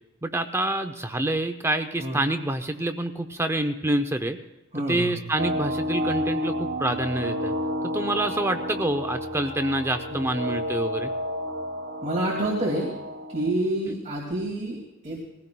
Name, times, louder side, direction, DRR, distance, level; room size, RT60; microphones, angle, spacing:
voice 1, 0.2-4.4 4.9-7.5 7.8-11.1 13.9-14.0, right 1 dB, 15° right, 7 dB, 0.5 m, -27 dB
voice 2, 4.7-5.1 10.1-10.3 12.0-12.9 13.3-15.2, right 1 dB, 35° right, -4 dB, 2.2 m, -28 dB
sound 1, 5.4-13.5, equal, 80° right, 1.2 m, -30 dB
21.0 x 16.0 x 2.2 m, 0.98 s
head